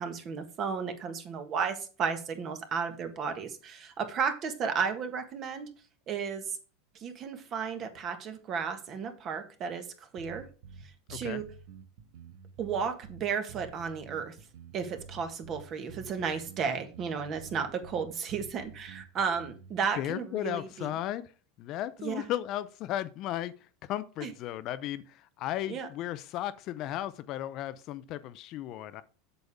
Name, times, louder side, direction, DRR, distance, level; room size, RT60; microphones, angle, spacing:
voice 1, 0.0-5.7 6.1-6.5 6.9-10.5 11.1-11.4 12.6-14.3 14.7-20.9 22.0-22.3 24.2-24.3 25.7-25.9, right 6 dB, 35° right, 8 dB, 1.6 m, -33 dB
sound 1, 10.2-19.8, right 6 dB, 70° right, 1.4 m, -49 dB
voice 2, 11.1-11.4 20.0-21.3 21.6-29.0, left 13 dB, 45° left, 14 dB, 0.6 m, -35 dB
8.0 x 6.9 x 3.5 m, 0.37 s
supercardioid pair, 145°, 0 cm